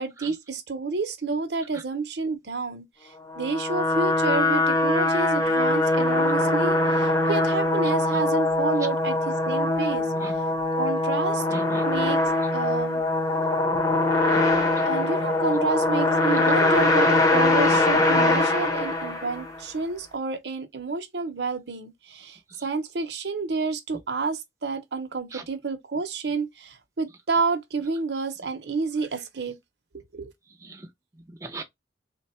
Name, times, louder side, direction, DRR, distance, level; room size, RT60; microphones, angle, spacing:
voice 1, 0.0-9.2 9.5-10.1 10.7-11.4 11.9-12.2 12.5-13.0 14.9-29.6 30.1-30.3, right 4 dB, 65° right, 0.8 m, -29 dB
sound 1, 3.3-19.6, left 2 dB, 20° left, 0.8 m, -22 dB
voice 2, 11.5-11.9 14.3-14.4 25.3-25.4 30.6-30.9 31.3-31.6, right 2 dB, 15° right, 0.4 m, -38 dB
3.5 x 2.2 x 4.2 m
head